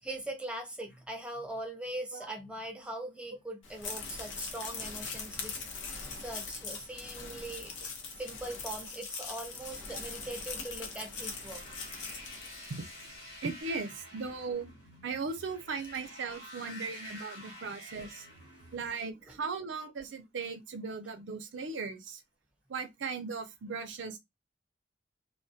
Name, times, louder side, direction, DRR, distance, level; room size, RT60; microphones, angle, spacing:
voice 1, 0.1-7.7 8.2-11.6 19.3-19.4, right 1 dB, 5° right, 0.5 m, -41 dB
sound 1, 3.6-13.2, left 4 dB, 85° left, 0.6 m, -41 dB
sound 2, 11.2-18.9, left 1 dB, 70° left, 1.0 m, -49 dB
voice 2, 13.4-14.7 15.0-18.3 18.7-22.2 22.7-24.2, right 4 dB, 75° right, 0.5 m, -38 dB
2.2 x 2.1 x 2.7 m
head